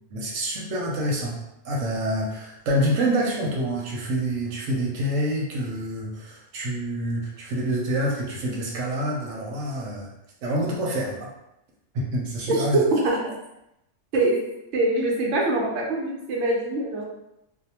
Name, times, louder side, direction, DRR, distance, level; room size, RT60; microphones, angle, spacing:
voice 1, 0.1-1.4 1.6-10.1 10.4-11.3 11.9-12.8, right 1 dB, 85° right, -2 dB, 1.0 m, -27 dB
voice 2, 12.5-13.2 14.1-14.4 14.7-17.0, right 2 dB, 70° right, -2 dB, 0.9 m, -23 dB
2.6 x 2.0 x 2.8 m, 0.85 s
omnidirectional pair, 1.3 m